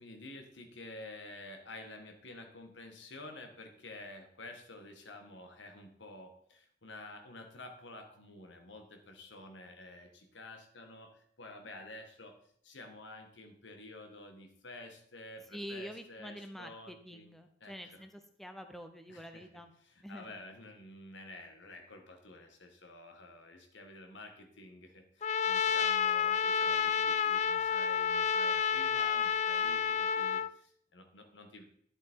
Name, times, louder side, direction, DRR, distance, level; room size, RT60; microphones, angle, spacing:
voice 1, 0.0-12.4 12.6-17.3 17.6-18.0 19.1-19.5 19.8-31.6, left 2 dB, 80° left, 5 dB, 1.8 m, -50 dB
voice 2, 15.5-19.7 20.0-20.5, equal, ahead, 7 dB, 0.7 m, -46 dB
Trumpet, 25.2-30.5, left 7 dB, 35° left, 0.4 m, -30 dB
11.5 x 7.5 x 4.6 m, 0.65 s
head